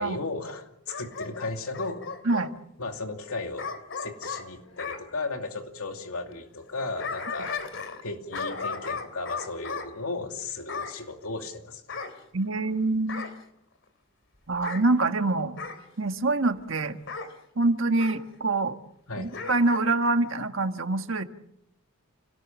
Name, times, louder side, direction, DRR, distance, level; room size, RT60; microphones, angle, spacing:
voice 1, 0.0-2.1 2.8-3.7 4.0-7.5 8.0-12.0 19.1-19.4, left 3 dB, 80° left, 4 dB, 2.7 m, -35 dB
Bark / Growling, 0.9-2.5 3.6-5.0 6.7-8.0 8.3-9.9 10.7-11.0 11.9-12.7 13.1-13.4 14.5-14.9 15.6-15.8 17.1-17.3 18.0-18.2 19.3-19.9 20.2-20.3, left 5 dB, 60° left, 3.1 m, -36 dB
voice 2, 12.3-13.2 14.5-15.6 16.0-17.0 17.5-18.8 19.2-21.2, right 2 dB, 60° right, 7 dB, 1.6 m, -25 dB
29.5 x 19.0 x 7.4 m, 0.78 s
head